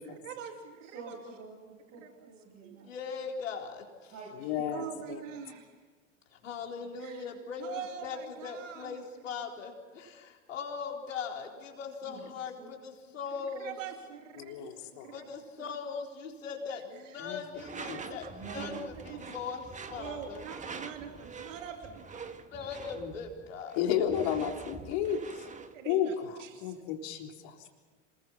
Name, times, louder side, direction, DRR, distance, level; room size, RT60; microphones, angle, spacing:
voice 1, 0.0-1.2 2.0-2.3 2.6-2.9 4.7-5.7 7.0-7.3 7.6-9.0 13.3-15.2 16.9-17.3 17.7-18.2 18.7-19.2 19.9-22.3 24.4-24.6 25.7-26.1 26.4-26.7, right 8 dB, 80° right, 4 dB, 2.6 m, -44 dB
voice 2, 0.8-2.9 4.1-4.8 6.8-6.9 12.0-12.7 18.3-18.7 19.0-19.6, right 4 dB, 45° right, -1 dB, 6.8 m, -48 dB
voice 3, 2.8-4.1 6.3-13.7 15.1-20.4 22.5-23.8, left 5 dB, 85° left, 1 dB, 4.2 m, -40 dB
voice 4, 4.4-5.2 14.4-15.1 17.2-17.4 17.9-18.0 23.0-23.1 23.8-25.5 25.9-26.1 26.6-27.6, left 9 dB, 60° left, 2 dB, 3.6 m, -32 dB
Door / Screech, 17.5-25.8, right 5 dB, 20° right, 1.6 m, -45 dB
27.5 x 21.0 x 6.0 m, 1.4 s
hypercardioid pair, 90°, 37 cm